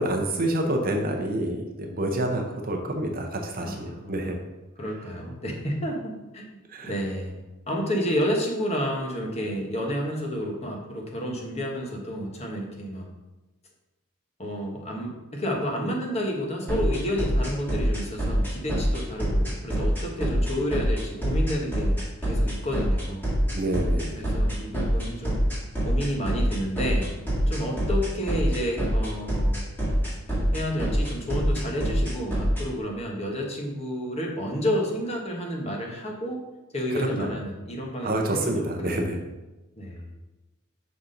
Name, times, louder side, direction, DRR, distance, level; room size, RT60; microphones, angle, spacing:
voice 1, 0.0-4.4 6.7-6.9 23.5-24.2 36.9-37.3 38.0-39.2, right 1 dB, 40° right, 3 dB, 0.7 m, -28 dB
voice 2, 3.6-4.4 4.8-6.6 6.8-7.4 7.7-13.1 14.4-23.3 24.1-25.4 25.8-27.1 27.5-29.6 30.5-36.4 36.7-39.1 39.8-40.1, equal, 30° left, 0 dB, 1.2 m, -30 dB
sound 1, 16.7-32.6, equal, 10° left, 1.8 m, -27 dB
5.8 x 4.2 x 5.1 m, 1.1 s
head